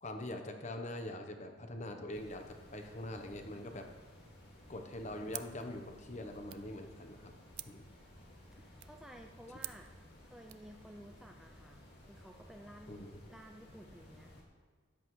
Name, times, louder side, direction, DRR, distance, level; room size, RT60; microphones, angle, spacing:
voice 1, 0.0-3.9 4.7-7.3 7.7-7.8 12.9-13.2, left 1 dB, 35° left, 5 dB, 0.9 m, -43 dB
sound 1, 2.1-14.4, left 1 dB, 50° left, 2.1 m, -57 dB
sound 2, 5.3-10.7, right 17 dB, 80° right, 0.4 m, -51 dB
voice 2, 8.5-9.9 10.2-11.8 12.1-13.0 13.3-14.3, equal, ahead, 2 dB, 0.4 m, -54 dB
13.0 x 10.0 x 3.1 m, 1.5 s
head